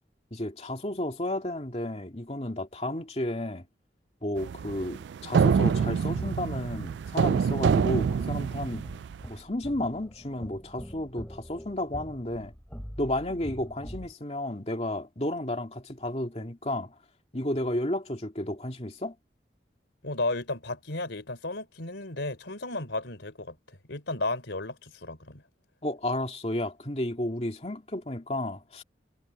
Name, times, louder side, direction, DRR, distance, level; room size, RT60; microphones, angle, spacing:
voice 1, 0.3-3.7 4.2-8.9 9.3-12.5 13.0-17.0 17.3-19.1 25.8-28.8, left 1 dB, 35° left, 2.6 m, -32 dB
sound 1, 4.4-9.2, right 6 dB, 80° right, 0.3 m, -26 dB
sound 2, 6.0-14.1, equal, 10° left, 3.6 m, -44 dB
voice 2, 20.0-25.4, left 2 dB, 85° left, 3.6 m, -34 dB
head